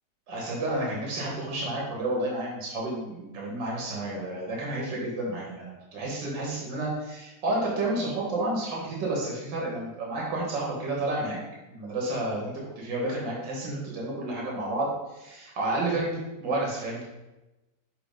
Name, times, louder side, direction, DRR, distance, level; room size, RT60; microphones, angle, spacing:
voice 1, 0.3-11.4 11.7-17.1, right 2 dB, 85° right, -3 dB, 2.0 m, -31 dB
5.3 x 4.1 x 5.1 m, 1.0 s
omnidirectional pair, 1.9 m